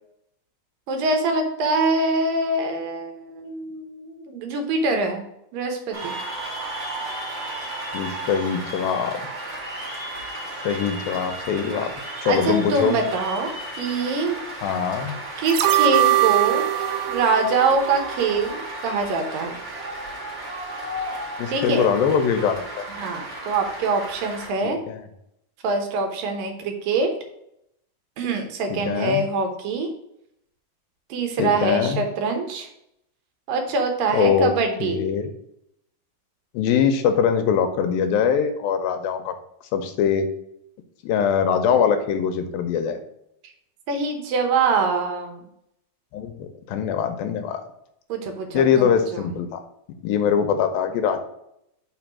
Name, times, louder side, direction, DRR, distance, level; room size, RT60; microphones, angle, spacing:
voice 1, 0.9-5.2 5.5-6.2 12.2-14.4 15.4-16.7 17.1-19.6 21.5-21.9 23.0-24.8 25.6-27.1 28.2-29.9 31.1-32.7 33.5-35.0 43.9-45.4 48.1-49.2, right 3 dB, 70° right, 4 dB, 2.6 m, -24 dB
Cheering / Applause, 5.9-24.5, right 1 dB, 35° right, 2.4 m, -34 dB
voice 2, 7.9-9.2 10.6-11.9 12.2-13.0 14.6-15.1 21.4-22.9 24.6-25.0 28.7-29.2 31.4-32.0 34.1-34.5 34.8-35.3 36.5-39.3 39.7-40.3 41.0-43.0 46.1-47.6 48.5-49.6 50.0-51.2, left 7 dB, 80° left, 7 dB, 2.4 m, -22 dB
sound 1, 15.5-18.6 19.0-19.1, right 14 dB, 90° right, 2.5 m, -22 dB
5.8 x 4.3 x 6.1 m, 0.78 s
omnidirectional pair, 4.3 m